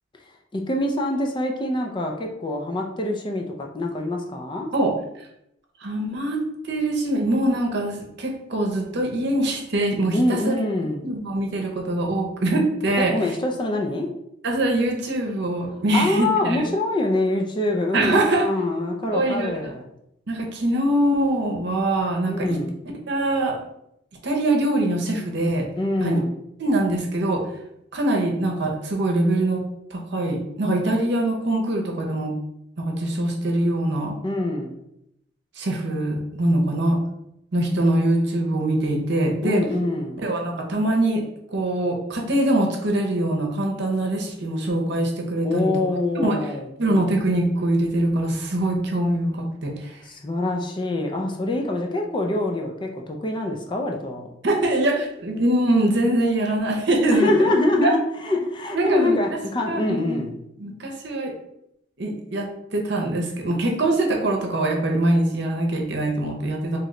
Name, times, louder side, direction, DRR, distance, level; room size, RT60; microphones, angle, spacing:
voice 1, 0.5-4.7 10.1-11.1 13.0-14.1 15.9-19.9 22.3-22.7 25.8-26.3 34.2-34.8 39.4-40.2 45.4-46.7 50.0-54.3 57.1-60.3, left 2 dB, 25° left, 2 dB, 0.4 m, -25 dB
voice 2, 5.8-6.4 6.6-10.5 11.0-13.1 14.4-16.6 17.9-18.5 19.1-19.6 20.3-22.6 23.1-23.6 24.2-25.7 26.0-26.2 26.6-27.4 27.9-29.6 29.9-32.3 32.8-34.2 35.6-37.0 37.5-39.6 40.2-41.2 41.5-45.8 46.2-46.4 46.8-50.0 54.4-57.5 57.8-57.9 58.7-59.2 59.7-60.2 60.6-61.3 62.0-66.8, right 1 dB, 60° right, 1 dB, 0.8 m, -23 dB
3.2 x 2.9 x 3.7 m, 0.80 s
head